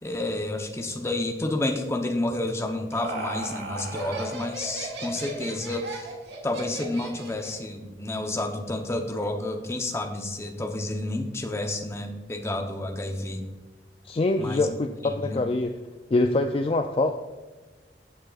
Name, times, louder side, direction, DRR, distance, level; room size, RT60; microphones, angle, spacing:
voice 1, 0.0-6.1 6.4-13.4 14.4-14.7 15.0-15.4, left 2 dB, 15° left, 4 dB, 0.8 m, -30 dB
Laughter, 2.5-7.6, right 2 dB, 75° right, 1.6 m, -36 dB
voice 2, 14.0-15.8 16.1-17.1, left 2 dB, 30° left, 6 dB, 0.4 m, -24 dB
14.5 x 6.5 x 2.4 m, 1.3 s
head